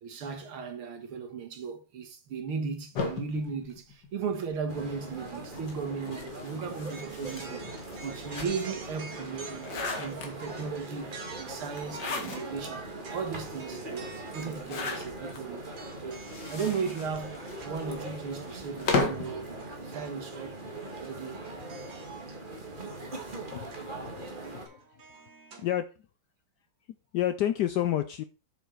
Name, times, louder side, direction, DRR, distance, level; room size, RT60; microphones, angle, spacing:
voice 1, 0.0-12.8 13.1-16.2 16.5-19.5 19.9-20.6 20.9-21.4, right 5 dB, 85° right, 2.4 m, -36 dB
sound 1, 2.9-4.5 5.4-8.9 9.3-10.7 11.7-12.7 13.2-13.3 13.5-13.6 14.5-15.4 16.1-19.3, left 4 dB, 55° left, 2.1 m, -35 dB
sound 2, 4.7-24.7, right 2 dB, 25° right, 1.8 m, -41 dB
sound 3, 6.9-20.2 20.6-20.7 21.3-25.7, right 4 dB, 65° right, 2.4 m, -49 dB
voice 2, 24.0-24.4 24.6-24.8 25.6-25.9 27.1-28.2, left 12 dB, 75° left, 0.9 m, -29 dB
6.9 x 6.6 x 4.5 m
omnidirectional pair, 2.3 m